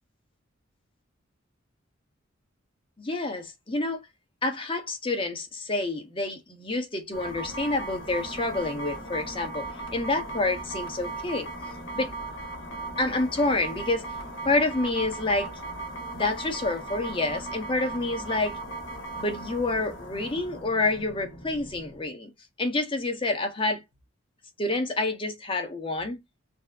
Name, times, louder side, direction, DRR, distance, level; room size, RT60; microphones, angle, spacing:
voice 1, 3.0-4.0 4.4-9.7 9.9-11.5 11.9-12.1 13.0-14.1 14.4-15.5 16.1-18.6 19.2-22.3 22.6-23.8 24.6-26.2, left 2 dB, 25° left, 1.1 m, -28 dB
sound 1, 7.1-22.1, right 2 dB, 70° left, 1.5 m, -37 dB
4.1 x 2.2 x 2.4 m
head